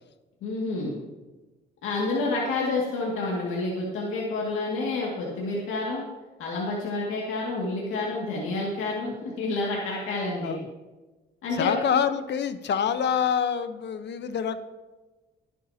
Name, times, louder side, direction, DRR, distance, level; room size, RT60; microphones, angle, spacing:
voice 1, 0.4-0.9 1.8-6.0 6.4-10.5 11.4-11.7, left 3 dB, 85° left, -4 dB, 2.2 m, -29 dB
voice 2, 11.5-14.6, left 7 dB, 60° left, 10 dB, 1.0 m, -26 dB
21.0 x 8.5 x 2.9 m, 1.2 s
cardioid pair, 90°, 20 cm